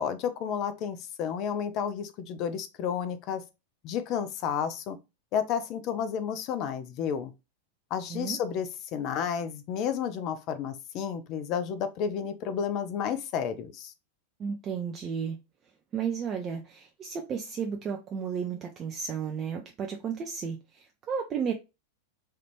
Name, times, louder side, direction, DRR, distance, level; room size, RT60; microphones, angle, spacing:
voice 1, 0.0-3.4 3.8-5.0 5.3-7.3 7.9-13.9, left 8 dB, 40° left, 0.5 m, -31 dB
voice 2, 14.4-15.4 15.9-21.5, right 6 dB, 30° right, 0.5 m, -33 dB
3.2 x 2.4 x 3.0 m
figure-of-eight pair, 90°, 0 cm